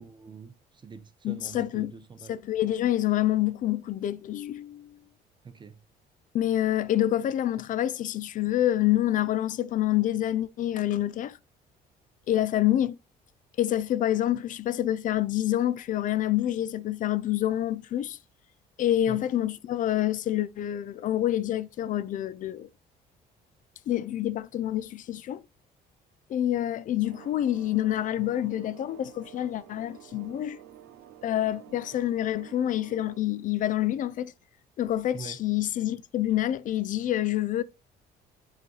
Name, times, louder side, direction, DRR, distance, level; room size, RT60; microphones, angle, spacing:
voice 1, 0.0-2.3 5.4-5.8 19.1-19.2 35.1-35.4, right 5 dB, 25° right, 0.8 m, -44 dB
voice 2, 1.2-1.9 2.3-5.0 6.3-11.4 12.3-13.0 13.6-18.2 18.8-22.7 23.9-25.4 26.3-30.6 31.2-34.3 34.8-37.6, left 12 dB, 50° left, 0.4 m, -27 dB
sound 1, 27.0-33.2, right 11 dB, 80° right, 0.8 m, -50 dB
8.2 x 3.9 x 3.1 m
cardioid pair, 110°, 17 cm